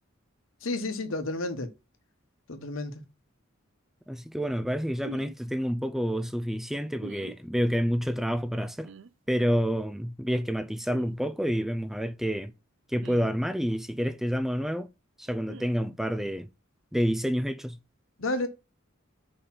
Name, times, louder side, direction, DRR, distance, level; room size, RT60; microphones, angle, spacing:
voice 1, 0.6-1.7 2.5-3.0 18.2-18.5, left 2 dB, 85° left, 1.1 m, -31 dB
voice 2, 4.1-8.9 9.3-12.5 12.9-14.9 15.2-16.5 16.9-17.8, equal, ahead, 0.3 m, -28 dB
sound 1, 5.0-5.3 7.0-7.4 8.8-9.1 10.9-11.1 13.0-13.4 15.5-15.7, right 4 dB, 65° right, 0.5 m, -44 dB
5.0 x 4.4 x 5.6 m
head